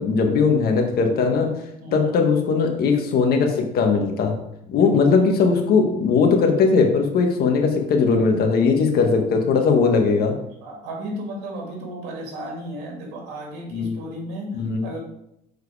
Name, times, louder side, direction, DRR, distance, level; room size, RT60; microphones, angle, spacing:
voice 1, 0.0-1.5 1.9-4.3 4.7-10.3 13.7-14.0 14.5-14.8, left 5 dB, 65° left, 3 dB, 1.5 m, -19 dB
voice 2, 1.8-2.1 10.6-15.0, equal, 90° right, 0 dB, 2.4 m, -34 dB
6.7 x 4.8 x 4.9 m, 0.79 s
cardioid pair, 110°, 17 cm